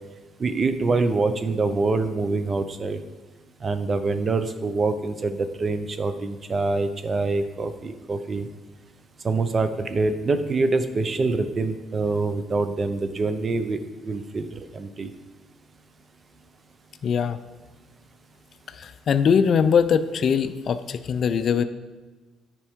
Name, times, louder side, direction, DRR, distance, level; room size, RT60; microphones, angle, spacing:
voice 1, 0.4-3.0 3.6-8.4 9.2-14.5 14.7-15.1, right 3 dB, 35° right, 10 dB, 0.6 m, -25 dB
voice 2, 17.0-17.4 18.8-21.6, left 7 dB, 50° left, 11 dB, 0.4 m, -21 dB
9.9 x 4.5 x 3.5 m, 1.2 s
cardioid pair, 100°, 0 cm